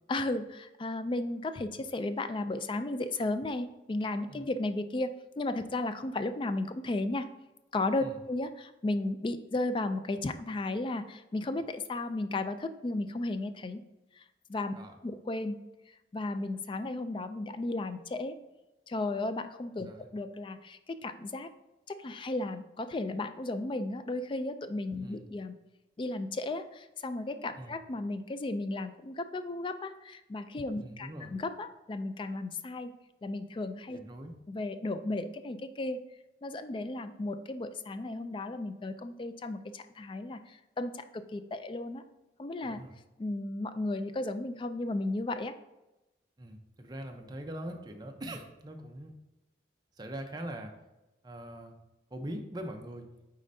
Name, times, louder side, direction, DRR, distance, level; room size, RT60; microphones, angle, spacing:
voice 1, 0.1-7.3 7.7-13.8 14.2-14.3 14.5-14.7 15.0-15.6 16.1-18.4 18.9-21.5 21.9-25.6 26.0-32.9 33.2-34.0 34.5-36.0 36.4-42.0 42.4-42.8 43.2-45.6, left 2 dB, 30° left, 11 dB, 0.3 m, -34 dB
voice 2, 30.8-31.3 33.9-34.3 42.6-42.9 46.4-49.1 50.0-50.7 51.2-51.8 52.1-53.1, right 1 dB, 25° right, 4 dB, 0.6 m, -42 dB
8.6 x 4.2 x 2.6 m, 1.0 s
head